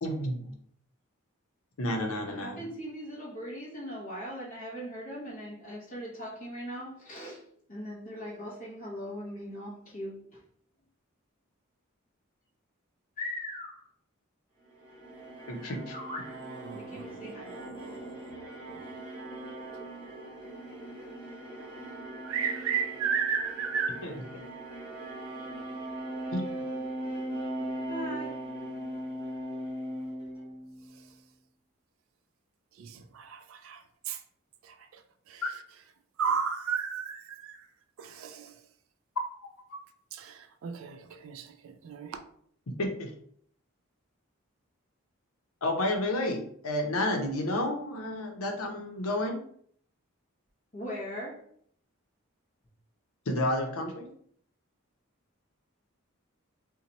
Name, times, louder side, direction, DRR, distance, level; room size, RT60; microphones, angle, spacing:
voice 1, 0.0-0.5 1.8-2.6 15.5-15.9 24.0-24.1 26.3-26.5 35.4-35.5 39.7-39.8 42.8-43.1 45.6-49.4 53.3-54.1, left 1 dB, 85° left, 0.7 m, -31 dB
voice 2, 2.3-10.4 13.2-13.9 15.9-16.4 16.7-17.6 27.9-28.4 50.7-51.5, equal, 35° left, 0.8 m, -40 dB
sound 1, 14.7-31.0, right 1 dB, 5° right, 1.2 m, -39 dB
voice 3, 16.6-18.9 22.2-24.1 32.8-34.2 34.6-35.0 35.3-35.4 36.2-37.7 38.0-38.5 40.1-42.2, right 6 dB, 75° right, 0.4 m, -34 dB
2.8 x 2.2 x 3.9 m
head